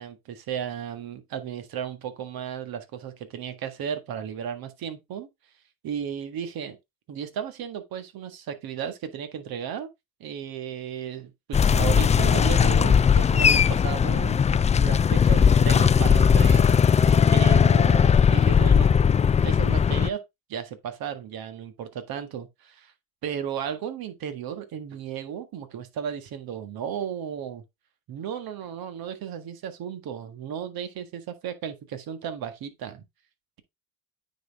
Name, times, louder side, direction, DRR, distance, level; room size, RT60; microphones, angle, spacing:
voice 1, 0.0-5.3 5.8-6.8 7.1-9.9 10.2-16.8 17.3-19.0 19.4-20.2 20.5-22.9 23.2-27.6 28.1-33.0, right 8 dB, 60° right, 1.7 m, -34 dB
sound 1, 11.5-20.1, left 7 dB, 20° left, 0.3 m, -19 dB
9.3 x 4.4 x 3.6 m
supercardioid pair, 75°, 40 cm